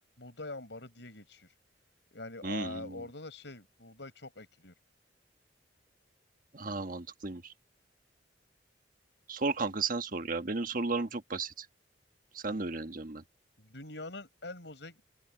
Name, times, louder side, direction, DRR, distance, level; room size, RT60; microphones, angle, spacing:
voice 1, 0.2-1.5 2.1-4.7 13.6-15.0, left 2 dB, 80° left, 5.0 m, -44 dB
voice 2, 2.4-3.0 6.5-7.4 9.3-11.6 12.3-13.2, right 3 dB, 50° right, 1.3 m, -34 dB
open air
head